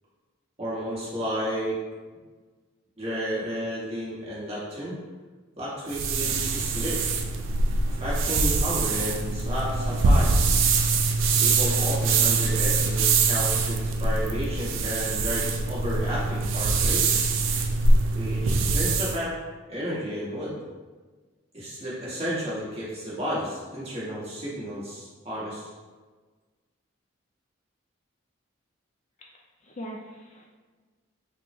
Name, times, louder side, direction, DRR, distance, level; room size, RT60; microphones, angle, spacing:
voice 1, 0.6-1.8 3.0-5.0 5.6-7.0 7.9-10.5 11.4-17.3 18.1-19.3 19.7-20.5 21.5-25.7, equal, 30° right, -7 dB, 1.0 m, -32 dB
sound 1, 5.9-19.2, right 3 dB, 70° right, 0.3 m, -23 dB
voice 2, 29.2-30.5, equal, 35° left, -1 dB, 0.3 m, -42 dB
3.4 x 2.1 x 4.2 m, 1.4 s
head